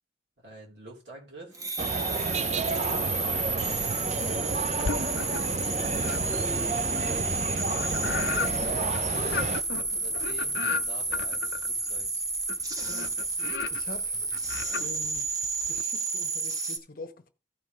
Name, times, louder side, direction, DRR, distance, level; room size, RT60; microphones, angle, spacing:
voice 1, 0.4-1.6 2.7-3.0 3.9-5.5 6.9-7.4 8.0-9.4 9.9-12.2, right 2 dB, 75° right, 3.6 m, -47 dB
sound 1, 1.5-16.8, right 3 dB, 20° right, 0.9 m, -31 dB
sound 2, 1.8-9.6, right 4 dB, 40° right, 0.4 m, -31 dB
sound 3, 4.8-5.6 6.0-15.8, left 5 dB, 70° left, 0.5 m, -36 dB
voice 2, 13.7-14.2 14.8-17.3, left 2 dB, 50° left, 1.0 m, -45 dB
15.5 x 5.4 x 3.1 m
head